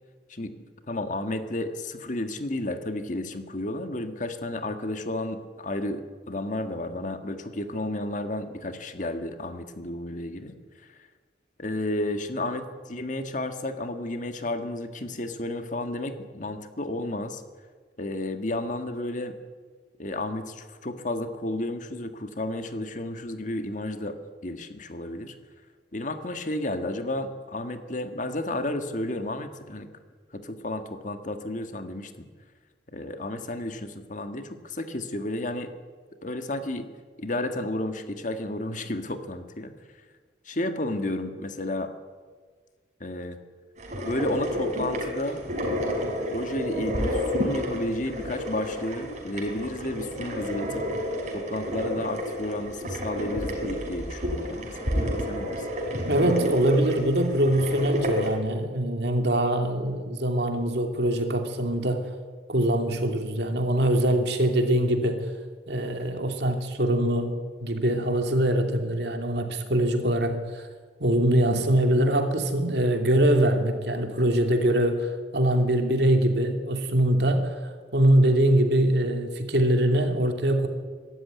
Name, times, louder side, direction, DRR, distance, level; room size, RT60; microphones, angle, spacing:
voice 1, 0.9-10.6 11.6-17.4 18.0-19.4 20.0-25.4 25.9-29.9 30.3-32.1 32.9-35.7 36.2-36.9 37.2-39.7 40.5-41.9 43.0-43.4 44.0-45.4 46.3-50.8 51.3-55.7, left 1 dB, 45° left, 7 dB, 1.8 m, -32 dB
sound 1, 43.8-58.3, equal, 45° right, 4.9 m, -30 dB
voice 2, 56.1-62.1 62.5-65.3 65.7-70.7 71.0-80.7, right 1 dB, 70° right, 5 dB, 2.7 m, -23 dB
23.5 x 13.0 x 9.4 m, 1.5 s
head